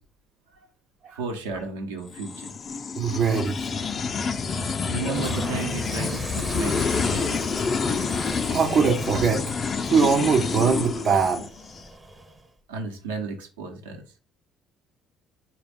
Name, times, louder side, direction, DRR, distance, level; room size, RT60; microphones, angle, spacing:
voice 1, 1.1-2.6 4.9-7.4 12.7-14.0, right 4 dB, 80° right, 3 dB, 0.9 m, -33 dB
sound 1, 2.1-11.8, left 5 dB, 40° left, 0.4 m, -28 dB
voice 2, 2.9-3.7 8.5-9.4 9.9-11.5, right 5 dB, 55° right, 2 dB, 0.6 m, -22 dB
Toilet flush, 4.9-12.5, right 2 dB, 20° right, 0.6 m, -40 dB
4.1 x 2.2 x 3.5 m, 0.36 s
hypercardioid pair, 55°, 0 cm